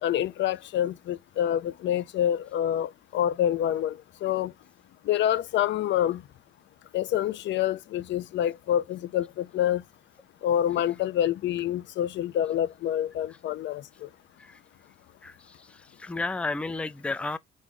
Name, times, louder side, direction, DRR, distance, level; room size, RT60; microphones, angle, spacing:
voice 1, 0.0-4.5 5.1-6.2 6.9-9.8 10.4-14.1, left 11 dB, 65° left, 0.4 m, -27 dB
voice 2, 15.7-17.4, left 3 dB, 5° left, 0.4 m, -32 dB
4.7 x 2.6 x 3.7 m
cardioid pair, 90°, 20 cm